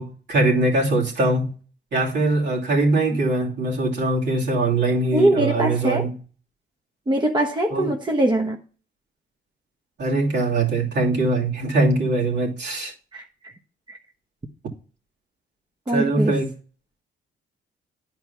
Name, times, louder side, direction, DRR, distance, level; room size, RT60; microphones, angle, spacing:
voice 1, 0.0-1.6 1.9-6.2 7.7-7.9 10.0-12.9 15.9-16.5, right 2 dB, 60° right, 2.9 m, -22 dB
voice 2, 5.1-6.1 7.1-8.6 13.1-13.2 13.9-14.0 15.9-16.4, right 1 dB, 20° right, 1.1 m, -22 dB
10.0 x 4.7 x 5.8 m
cardioid pair, 90°, 20 cm